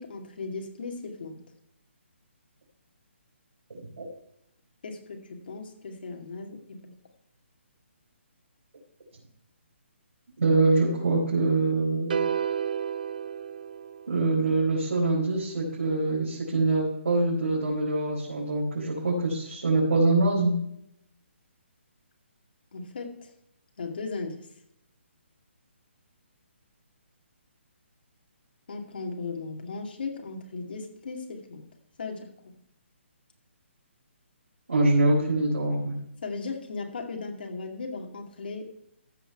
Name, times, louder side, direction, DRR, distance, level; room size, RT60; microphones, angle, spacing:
voice 1, 0.0-1.4 4.8-7.0 22.7-23.3 23.8-24.5 28.7-31.7 32.0-32.6 36.2-38.7, left 4 dB, 50° left, 2 dB, 2.3 m, -37 dB
voice 2, 3.7-4.1 10.4-12.2 14.1-20.6 34.7-36.0, right 2 dB, 85° right, -5 dB, 4.2 m, -24 dB
sound 1, 12.1-14.4, right 8 dB, 45° right, 0.5 m, -31 dB
14.5 x 5.9 x 4.5 m, 0.79 s
hypercardioid pair, 175°, 7 cm